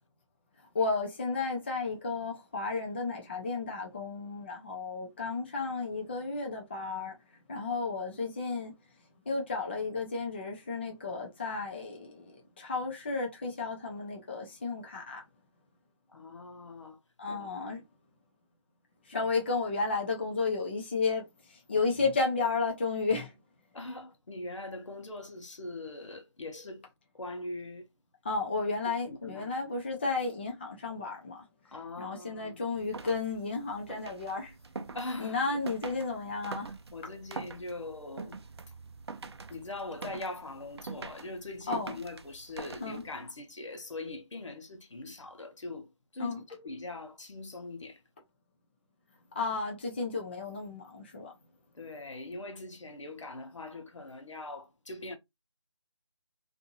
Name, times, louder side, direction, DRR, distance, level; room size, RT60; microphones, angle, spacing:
voice 1, 0.6-8.8 9.3-15.2 17.2-17.8 19.0-23.4 28.2-31.5 32.0-34.6 35.2-36.7 41.7-42.0 42.8-43.0 46.2-46.4 49.3-51.3, left 4 dB, 20° left, 0.4 m, -33 dB
voice 2, 16.1-17.0 17.3-17.5 19.1-19.3 23.7-26.9 27.1-27.9 29.1-29.5 31.6-32.6 34.9-35.7 36.9-38.4 38.7-38.8 39.5-48.0 51.7-55.1, left 2 dB, 75° left, 0.9 m, -42 dB
sound 1, 32.7-43.3, right 4 dB, 60° right, 0.5 m, -45 dB
2.6 x 2.5 x 2.8 m
figure-of-eight pair, 160°, 16 cm